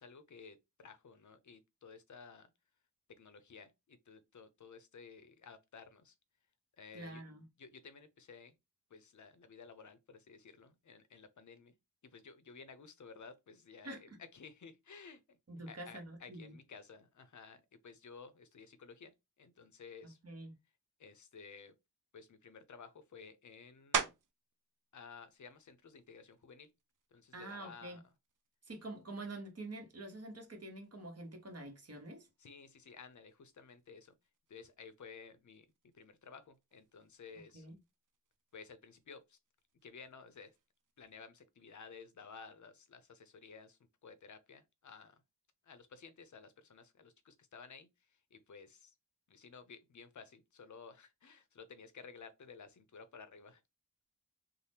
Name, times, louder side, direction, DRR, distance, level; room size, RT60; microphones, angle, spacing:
voice 1, 0.0-2.5 3.1-6.2 6.8-7.2 7.6-8.6 8.9-11.7 12.0-15.4 15.7-20.2 21.0-21.7 22.1-24.2 24.9-26.7 27.1-28.0 32.4-34.1 34.5-35.7 35.9-37.7 38.5-39.4 39.8-40.5 41.0-45.2 45.6-48.9 49.3-53.6, left 5 dB, 55° left, 0.6 m, -54 dB
voice 2, 6.9-7.5 13.8-14.0 15.5-16.5 20.0-20.5 27.3-28.0 28.7-32.3 37.5-37.8, right 2 dB, 45° right, 1.0 m, -47 dB
sound 1, 23.9-24.5 25.1-29.5 30.0-35.2 35.5-41.1, right 6 dB, 60° right, 0.5 m, -45 dB
2.8 x 2.0 x 3.4 m
wide cardioid pair, 70°, 35 cm